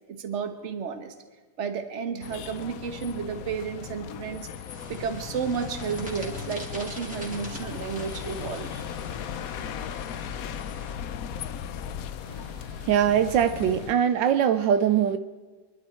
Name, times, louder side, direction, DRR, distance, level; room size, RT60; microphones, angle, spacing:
voice 1, 0.1-1.1 1.6-4.5 4.9-8.9, right 6 dB, 45° right, 7 dB, 1.4 m, -32 dB
sound 1, 2.2-13.9, left 8 dB, 65° left, 0.9 m, -37 dB
sound 2, 4.7-10.9, equal, 5° right, 2.7 m, -44 dB
voice 2, 12.3-15.2, right 9 dB, 80° right, 10 dB, 1.4 m, -23 dB
25.5 x 11.5 x 4.4 m, 1.4 s
omnidirectional pair, 2.0 m